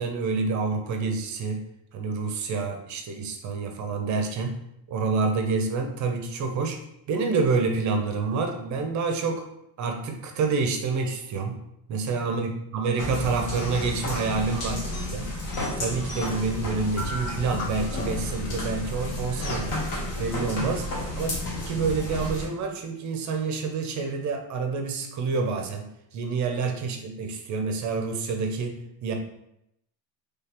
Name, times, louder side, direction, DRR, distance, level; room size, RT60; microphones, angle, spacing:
voice 1, 0.0-1.6 1.9-4.5 4.9-6.8 7.1-9.4 9.8-11.6 11.9-15.3 15.8-19.8 20.2-20.9 21.2-21.3 21.7-29.1, right 4 dB, 40° right, 4 dB, 0.6 m, -28 dB
sound 1, 13.0-22.5, left 1 dB, 50° left, 1.3 m, -32 dB
sound 2, 13.6-14.4 14.9-16.5 17.0-18.4 19.4-19.7, left 1 dB, 35° left, 0.7 m, -37 dB
3.7 x 3.3 x 2.9 m, 0.79 s
cardioid pair, 140°, 44 cm